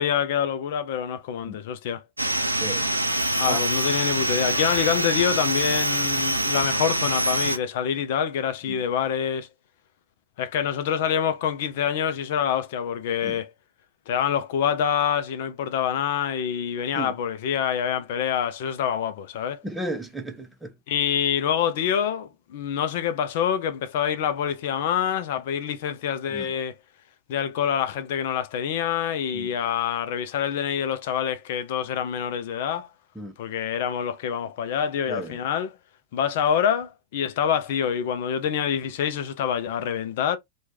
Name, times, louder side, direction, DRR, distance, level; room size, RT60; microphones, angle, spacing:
voice 1, 0.0-2.0 3.4-9.5 10.4-13.5 14.1-19.6 20.9-26.7 27.3-32.9 33.4-35.7 36.1-40.4, left 8 dB, 55° left, 0.5 m, -26 dB
sound 1, 2.2-7.6, right 1 dB, 85° right, 0.5 m, -25 dB
voice 2, 2.6-2.9 3.5-3.6 8.7-8.8 13.2-13.4 17.0-17.1 19.6-20.7 26.3-26.5 29.3-29.5 33.2-33.3 35.1-35.4, right 1 dB, 5° right, 0.6 m, -34 dB
3.0 x 2.3 x 3.3 m
figure-of-eight pair, 90°, 0 cm